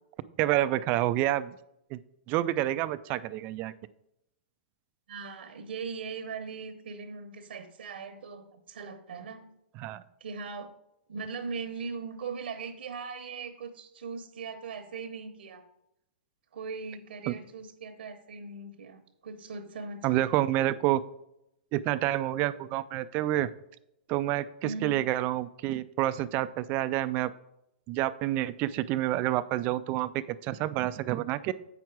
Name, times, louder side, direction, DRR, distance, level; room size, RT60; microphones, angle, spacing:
voice 1, 0.4-1.6 1.9-2.0 2.3-3.7 9.8-10.0 17.3-17.4 20.0-21.0 21.7-23.5 24.1-27.3 27.9-31.5, right 14 dB, 30° right, 14 dB, 0.3 m, -28 dB
voice 2, 5.1-9.5 10.2-10.7 11.1-15.6 16.5-20.5 24.6-25.0, right 5 dB, 80° right, 6 dB, 1.0 m, -39 dB
8.1 x 6.0 x 4.6 m, 0.83 s
hypercardioid pair, 150°, 6 cm